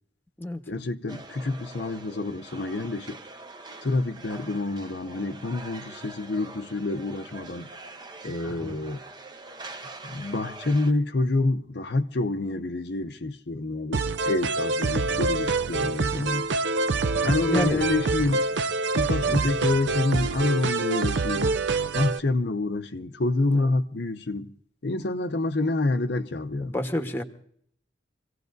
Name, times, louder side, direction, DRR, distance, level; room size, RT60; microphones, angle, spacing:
voice 1, 0.7-3.2 3.8-7.7 8.2-9.0 10.0-16.5 17.2-18.5 18.9-21.6 21.9-24.5 24.8-26.7, left 2 dB, 55° left, 0.7 m, -27 dB
sound 1, 1.1-10.9, right 2 dB, 20° right, 0.8 m, -44 dB
sound 2, 13.9-22.2, right 3 dB, 65° right, 0.5 m, -26 dB
voice 2, 17.5-17.8 19.3-19.5 23.5-23.7 26.6-27.2, left 1 dB, 10° left, 1.1 m, -30 dB
26.0 x 17.0 x 2.6 m
head